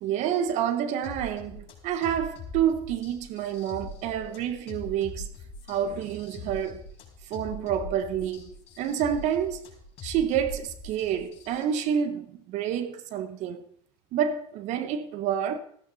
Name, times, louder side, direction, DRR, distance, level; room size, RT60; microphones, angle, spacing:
voice 1, 0.0-5.3 5.7-6.9 7.3-9.6 10.0-13.6 14.1-15.6, right 9 dB, 55° right, 1.4 m, -28 dB
sound 1, 1.0-11.6, left 2 dB, 50° left, 5.1 m, -42 dB
14.0 x 13.5 x 4.2 m
hypercardioid pair, 95°, 14 cm